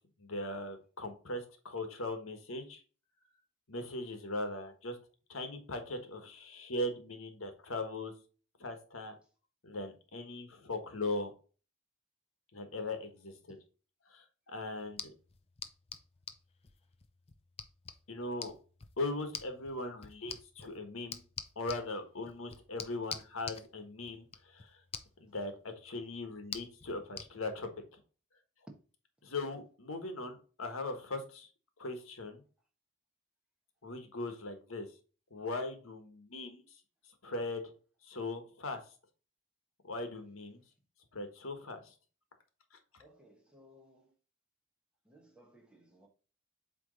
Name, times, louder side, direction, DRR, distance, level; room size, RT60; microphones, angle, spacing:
voice 1, 0.2-2.8 3.7-5.0 5.3-8.1 8.6-9.1 9.6-11.3 12.5-13.6 14.1-15.1 18.1-18.5 19.0-21.2 21.5-24.8 25.2-28.0 29.2-31.5 31.8-32.4 33.8-34.9 35.3-36.6 37.2-37.7 38.0-38.8 39.8-40.6 41.1-41.9, left 2 dB, 85° left, 1.4 m, -39 dB
sound 1, 14.8-27.3, left 7 dB, 30° left, 0.5 m, -48 dB
voice 2, 43.0-44.1 45.0-46.1, equal, 5° right, 1.3 m, -61 dB
8.0 x 3.3 x 4.0 m
head